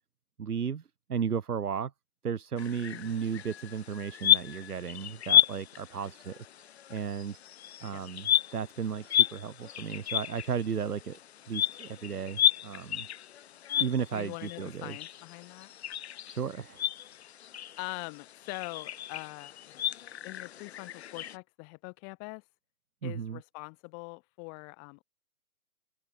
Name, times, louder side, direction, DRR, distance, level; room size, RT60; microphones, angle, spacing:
voice 1, 0.4-0.8 1.1-1.9 2.2-7.4 7.8-11.2 11.5-13.1 13.8-15.0 16.3-16.8 23.0-23.4, right 7 dB, 80° right, 2.1 m, -34 dB
sound 1, 2.6-21.4, left 10 dB, 45° left, 4.7 m, -32 dB
voice 2, 14.1-15.7 17.8-19.8 20.2-22.4 23.0-25.0, left 40 dB or more, 25° left, 7.3 m, -43 dB
open air
hypercardioid pair, 155°, 45 cm